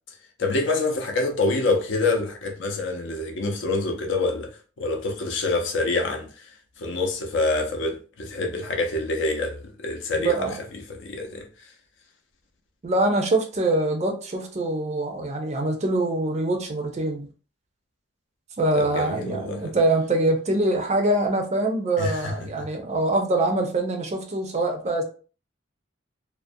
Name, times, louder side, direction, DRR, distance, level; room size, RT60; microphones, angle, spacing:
voice 1, 0.4-4.5 4.8-6.5 6.8-11.5 18.7-19.7 22.0-22.7, left 2 dB, 70° left, 0.6 m, -26 dB
voice 2, 10.2-10.5 12.8-17.3 18.6-25.0, right 2 dB, 35° right, 0.4 m, -24 dB
2.5 x 2.1 x 2.5 m
head